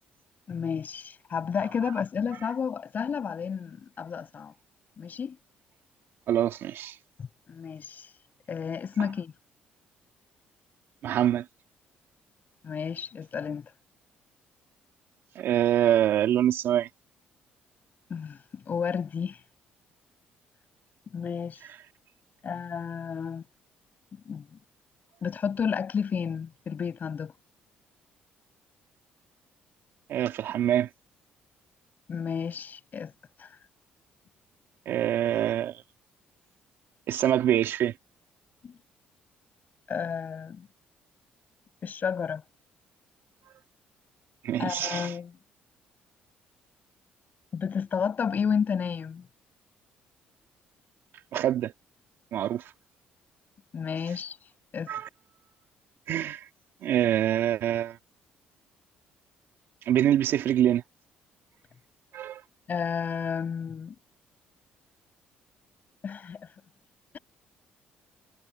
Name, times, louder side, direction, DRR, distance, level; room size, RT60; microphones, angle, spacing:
voice 1, 0.5-4.5 5.0-5.4 7.2-8.1 8.5-9.3 12.6-13.7 18.1-19.4 21.1-21.6 22.4-23.4 24.2-24.5 25.2-27.3 32.1-33.1 33.4-33.5 38.6-38.7 39.9-40.7 41.8-42.4 44.6-45.3 47.5-49.2 53.7-54.4 54.7-54.9 62.7-63.9 66.0-66.5, left 6 dB, 45° left, 6.1 m, -31 dB
voice 2, 6.3-7.0 11.0-11.5 15.4-16.9 30.1-30.9 34.9-35.8 37.1-37.9 44.4-45.2 51.3-51.7 52.3-52.7 54.9-55.1 56.1-56.5 56.8-58.0 59.8-60.8 62.1-62.4, right 11 dB, 70° right, 2.1 m, -25 dB
supercardioid pair, 75°, 4 cm